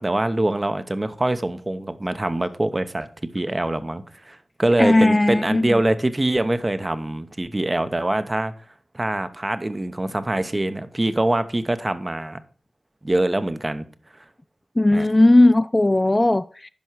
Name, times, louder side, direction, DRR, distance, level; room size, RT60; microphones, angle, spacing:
voice 1, 0.0-3.1 3.3-8.5 8.9-12.4 13.0-13.9 14.9-15.1, right 1 dB, 30° right, 0.8 m, -24 dB
voice 2, 4.8-5.8 14.8-16.7, left 2 dB, 25° left, 0.3 m, -17 dB
10.5 x 5.6 x 4.7 m
cardioid pair, 50°, 0 cm